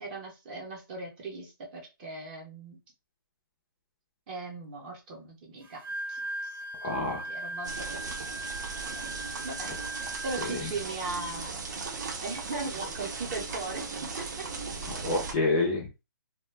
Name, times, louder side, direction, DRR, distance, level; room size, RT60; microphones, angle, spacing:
voice 1, 0.0-2.8 4.3-5.8 6.1-6.5 7.3-8.2 8.9-9.2 9.4-11.9 12.2-14.5, right 3 dB, 20° right, 0 dB, 0.7 m, -39 dB
Wind instrument woodwind instrument, 5.6-11.0, right 1 dB, 85° right, 0.8 m, -38 dB
voice 2, 6.8-7.2 10.5-10.7 14.9-16.0, left 2 dB, 20° left, -1 dB, 0.5 m, -28 dB
sound 1, 7.6-15.3, right 4 dB, 55° right, 0.7 m, -37 dB
2.3 x 2.2 x 3.2 m, 0.26 s
hypercardioid pair, 165°, 12 cm